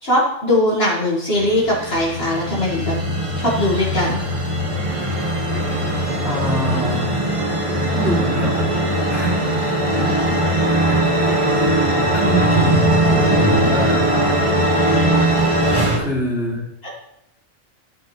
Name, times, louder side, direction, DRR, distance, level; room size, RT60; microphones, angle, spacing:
voice 1, 0.0-2.9 3.4-4.3 9.8-10.4 16.8-16.9, left 1 dB, 50° left, -4 dB, 2.0 m, -20 dB
sound 1, 1.4-16.0, right 1 dB, 25° right, 1.4 m, -19 dB
voice 2, 6.2-7.1 7.9-8.8 9.1-9.3 9.6-11.9 12.1-14.5 15.9-16.6, equal, ahead, -6 dB, 2.7 m, -26 dB
14.0 x 5.7 x 3.2 m, 0.81 s
omnidirectional pair, 1.4 m